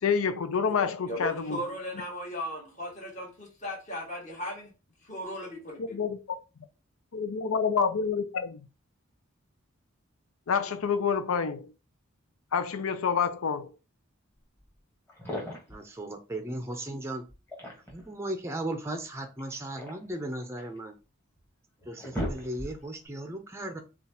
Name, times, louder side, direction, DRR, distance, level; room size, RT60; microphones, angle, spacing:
voice 1, 0.0-1.6 5.9-6.2 7.1-8.6 10.5-11.7 12.5-13.7, left 6 dB, 85° left, 0.5 m, -28 dB
voice 2, 1.1-4.7 5.0-6.0, equal, 35° left, 1.8 m, -37 dB
sound 1, 14.7-14.8 15.1-15.8 17.3-18.1 19.4-20.8 21.4-21.5 21.8-23.0, equal, 10° left, 1.3 m, -37 dB
voice 3, 15.7-17.2 17.9-21.0 21.9-23.8, right 1 dB, 15° right, 0.5 m, -36 dB
7.0 x 2.4 x 2.9 m
head